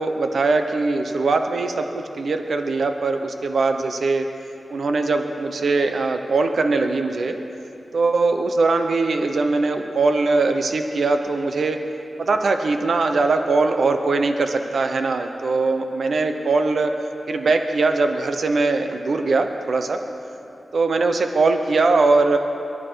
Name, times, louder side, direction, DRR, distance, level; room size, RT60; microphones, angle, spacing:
voice 1, 0.0-4.3 4.7-7.3 7.9-11.8 12.2-16.9 17.3-20.0 20.7-22.4, right 3 dB, 75° right, 6 dB, 0.9 m, -21 dB
24.0 x 12.0 x 4.6 m, 2.8 s
wide cardioid pair, 95°, 0 cm